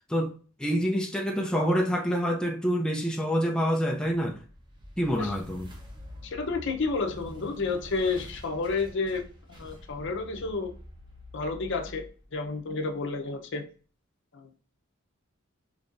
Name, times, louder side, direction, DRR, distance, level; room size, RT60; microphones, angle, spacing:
voice 1, 0.1-4.4 5.0-5.7, equal, 5° left, 0.3 m, -27 dB
sound 1, 4.4-13.2, left 1 dB, 20° right, 0.9 m, -47 dB
voice 2, 6.2-9.2 9.5-10.7 11.3-12.0 12.3-13.6 14.3-14.6, left 4 dB, 60° left, 0.7 m, -30 dB
5.3 x 3.3 x 2.5 m
head